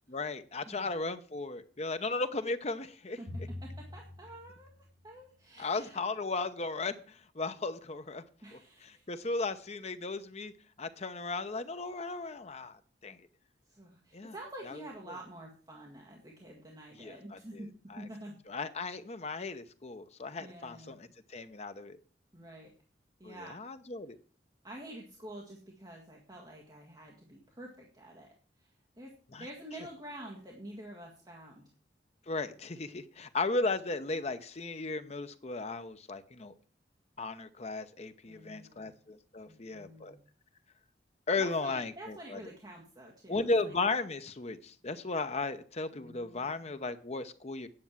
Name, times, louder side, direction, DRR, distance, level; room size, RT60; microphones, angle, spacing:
voice 1, 0.1-3.2 5.6-8.2 8.5-10.5 10.8-13.3 14.1-14.3 14.7-14.8 17.0-17.4 17.9-18.1 18.5-22.0 23.2-24.2 29.3-29.5 32.3-36.5 37.2-40.2 41.3-42.4 43.3-47.7, left 3 dB, 35° left, 10 dB, 0.8 m, -36 dB
voice 2, 0.6-1.0 3.2-3.3 3.6-4.7 5.0-6.0 8.4-9.0 13.7-18.4 20.4-21.0 22.3-22.7 23.2-23.6 24.6-28.7 29.0-31.6 38.3-39.0 39.5-40.2 41.4-43.7 45.9-46.7, right 1 dB, 25° right, -2 dB, 1.8 m, -48 dB
Drum, 3.3-5.6, left 1 dB, 60° right, 5.9 m, -45 dB
9.7 x 6.8 x 7.3 m, 0.43 s
head